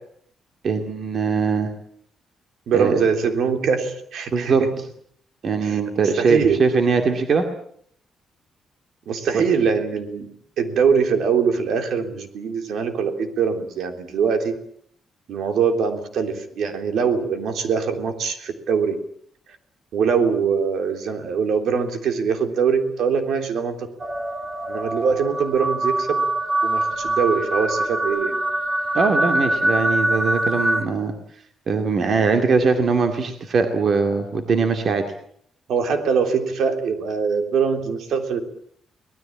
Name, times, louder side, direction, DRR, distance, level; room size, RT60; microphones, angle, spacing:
voice 1, 0.6-1.7 2.7-3.0 4.3-4.6 5.4-7.5 9.3-9.4 28.9-31.1 31.7-35.0, right 5 dB, 40° right, 6 dB, 2.3 m, -21 dB
voice 2, 2.7-4.7 5.6-5.8 6.2-6.6 9.1-10.3 10.6-14.5 15.3-19.0 19.9-23.9 24.7-26.3 26.6-28.4 35.7-38.4, right 6 dB, 70° right, 7 dB, 3.5 m, -22 dB
sound 1, 24.0-30.8, right 1 dB, 20° right, 2.3 m, -23 dB
24.5 x 19.5 x 8.8 m, 0.64 s
cardioid pair, 170°, 0 cm